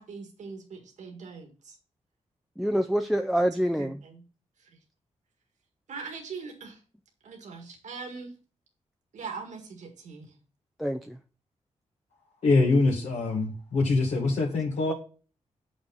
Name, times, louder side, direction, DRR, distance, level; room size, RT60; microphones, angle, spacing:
voice 1, 0.0-1.8 3.8-4.2 4.6-4.8 5.9-6.8 7.2-8.4 9.1-10.4, right 4 dB, 85° right, 1.9 m, -41 dB
voice 2, 2.6-4.0 10.8-11.2, equal, ahead, 0.4 m, -26 dB
voice 3, 12.4-14.9, left 3 dB, 70° left, 1.7 m, -24 dB
7.6 x 6.2 x 3.9 m
wide cardioid pair, 125°, 12 cm